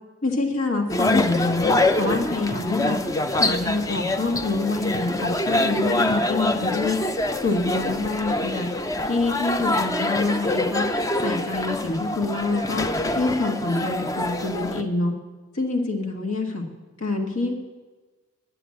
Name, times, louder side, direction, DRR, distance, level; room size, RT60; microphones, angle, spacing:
voice 1, 0.2-1.6 2.0-3.0 3.3-7.0 7.4-8.7 9.1-10.9 11.2-12.8 13.1-15.1 15.5-16.6 17.0-17.6, left 3 dB, 70° left, 3 dB, 1.6 m, -26 dB
sound 1, 0.9-14.8, left 2 dB, 15° left, 0.4 m, -25 dB
10.0 x 7.9 x 7.5 m, 1.3 s
head